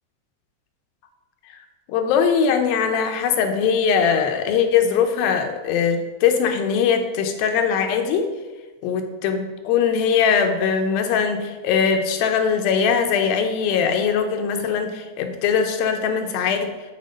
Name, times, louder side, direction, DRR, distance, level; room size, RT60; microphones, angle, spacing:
voice 1, 1.9-8.3 8.8-16.7, left 6 dB, 85° left, 5 dB, 2.5 m, -21 dB
9.3 x 4.4 x 5.1 m, 1.2 s
omnidirectional pair, 4.2 m